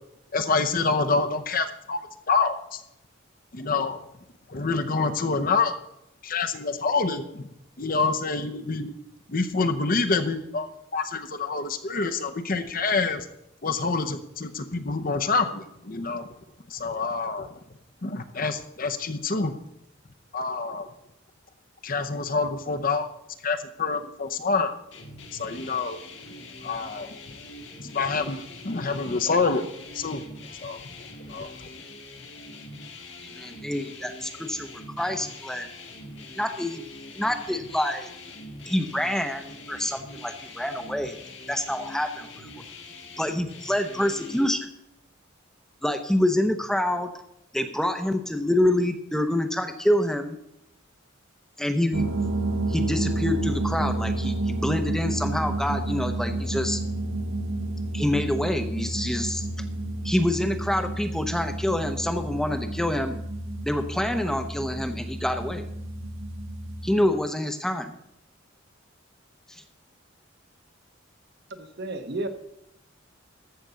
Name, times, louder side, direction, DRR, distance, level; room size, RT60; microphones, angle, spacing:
voice 1, 0.3-2.0 2.3-2.8 3.5-4.0 4.5-5.7 6.2-7.5 7.8-8.9 9.3-13.3 13.6-16.3 16.7-17.5 18.0-19.5 20.3-20.9 21.8-23.1 23.4-24.8 25.4-26.0 26.6-27.1 27.8-29.7 29.9-30.2 30.6-30.8 31.2-31.7, left 4 dB, 45° left, 9 dB, 0.8 m, -27 dB
sound 1, 24.9-44.4, left 2 dB, 60° left, 1.9 m, -43 dB
voice 2, 33.4-35.7 36.4-36.8 37.2-38.1 38.7-39.4 39.7-41.2 41.5-42.6 43.2-44.7 45.8-47.1 47.5-50.4 51.6-52.1 52.7-56.8 57.9-59.5 60.0-63.2 63.6-65.7 66.8-67.9 69.5-69.6, left 1 dB, 5° left, 7 dB, 0.7 m, -26 dB
sound 2, 51.9-66.9, right 2 dB, 80° right, 1.3 m, -30 dB
voice 3, 71.5-72.3, right 2 dB, 55° right, 8 dB, 1.1 m, -32 dB
13.5 x 5.1 x 6.9 m, 0.83 s
head